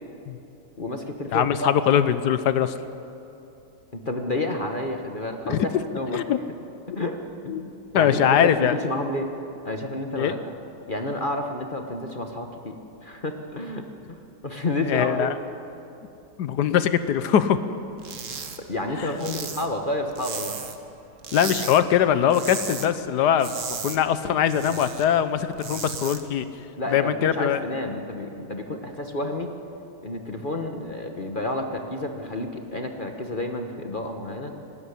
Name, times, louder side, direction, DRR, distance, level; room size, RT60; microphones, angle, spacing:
voice 1, 0.8-1.7 3.9-6.2 6.9-9.3 9.6-10.4 10.9-12.7 13.0-14.2 14.4-15.3 18.6-20.6 26.8-29.5 30.0-34.5, left 1 dB, 30° left, 4 dB, 1.0 m, -30 dB
voice 2, 1.3-2.7 5.5-5.7 6.1-6.4 7.5-7.6 7.9-8.7 10.2-10.3 14.9-15.4 16.4-17.6 19.0-19.1 21.3-23.5 23.8-26.4 26.9-27.6, left 9 dB, 65° left, 12 dB, 1.1 m, -22 dB
sound 1, 18.0-18.6 18.9-20.9 21.2-21.8 22.1-22.9 23.2-25.0 25.4-26.2, right 6 dB, 45° right, 1.3 m, -35 dB
23.5 x 12.5 x 9.8 m, 2.8 s
omnidirectional pair, 2.4 m